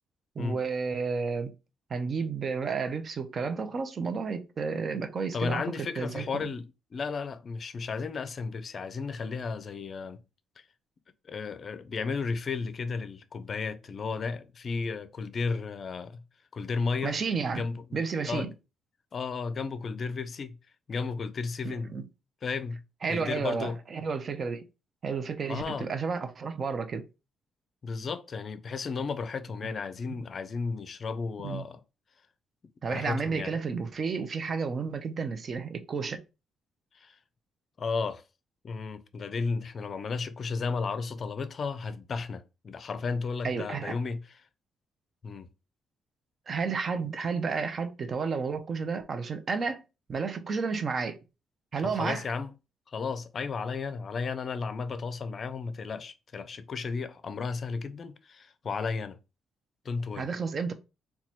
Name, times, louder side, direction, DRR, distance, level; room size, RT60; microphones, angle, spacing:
voice 1, 0.4-1.5 1.9-6.5 17.0-17.6 17.9-18.5 21.6-22.1 23.0-24.6 25.0-27.0 31.4-31.7 32.8-36.2 43.4-44.0 46.5-49.8 50.1-51.2 51.7-52.2 60.2-60.7, right 5 dB, 45° right, 0.6 m, -31 dB
voice 2, 5.3-10.2 11.3-16.2 16.5-17.2 17.5-18.5 19.1-20.6 20.9-21.9 22.4-22.8 23.1-23.8 25.5-25.9 27.8-31.8 32.9-33.5 36.9-37.2 37.8-38.2 38.6-44.2 45.2-45.5 51.8-52.5 52.9-59.2 59.8-60.3, left 4 dB, 45° left, 0.4 m, -34 dB
2.9 x 2.3 x 4.1 m
cardioid pair, 90°, 0 cm